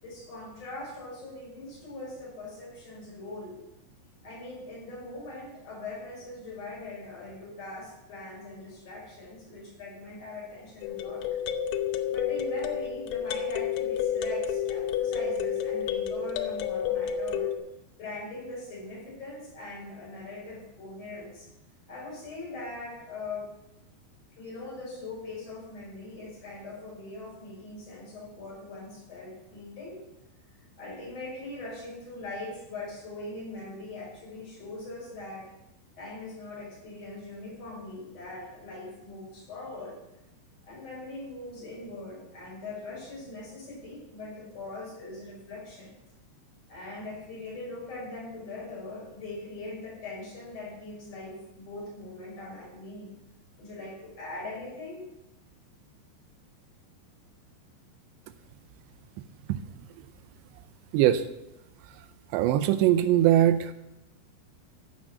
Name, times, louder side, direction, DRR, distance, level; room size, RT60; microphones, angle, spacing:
voice 1, 0.0-3.6 4.2-11.2 12.1-17.5 18.0-21.5 21.9-23.5 24.4-30.0 30.8-35.5 36.0-40.0 40.7-45.9 46.7-53.1 53.6-55.1, left 2 dB, 35° left, -5 dB, 6.5 m, -41 dB
sound 1, 10.8-17.6, left 8 dB, 85° left, 3.0 m, -30 dB
voice 2, 60.9-61.3 62.3-63.7, right 12 dB, 90° right, 10 dB, 2.9 m, -21 dB
15.0 x 6.2 x 6.3 m, 0.87 s
omnidirectional pair, 5.0 m